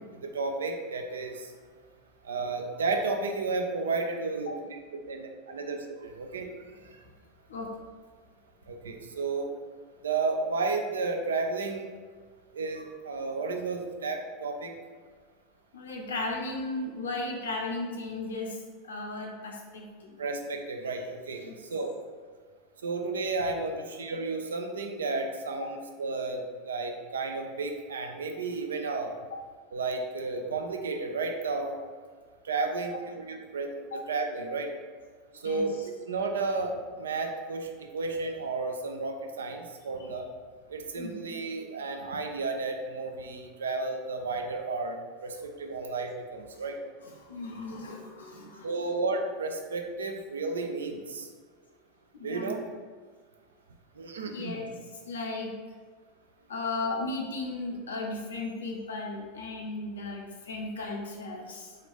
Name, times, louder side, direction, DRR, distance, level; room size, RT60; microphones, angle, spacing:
voice 1, 0.3-1.5 2.2-6.5 8.7-9.5 10.0-11.9 12.5-14.7 20.2-21.4 21.7-21.9 22.8-29.1 29.7-31.7 32.4-33.7 34.1-34.7 35.4-35.7 36.1-40.3 40.7-46.8 48.6-51.3 52.2-52.6 54.0-54.6, right 3 dB, 80° right, 4 dB, 0.4 m, -32 dB
voice 2, 15.7-20.2 21.4-21.5 25.6-25.7 29.3-29.4 33.9-34.0 35.4-35.9 40.9-41.4 47.0-48.7 52.1-52.6 54.2-54.7 55.0-55.6 56.5-61.7, left 2 dB, 80° left, 0 dB, 0.7 m, -36 dB
3.9 x 2.5 x 3.4 m, 1.5 s
figure-of-eight pair, 85°, 0 cm